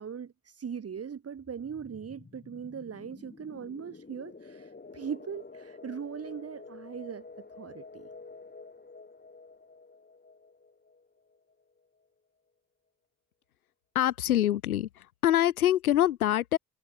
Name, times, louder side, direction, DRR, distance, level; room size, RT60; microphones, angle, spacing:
voice 1, 0.0-8.1, right 7 dB, 35° right, 2.1 m, -40 dB
sound 1, 1.4-11.9, left 3 dB, 25° left, 7.2 m, -50 dB
voice 2, 13.9-14.9 15.2-16.6, left 12 dB, 85° left, 1.6 m, -24 dB
hypercardioid pair, 55°, 42 cm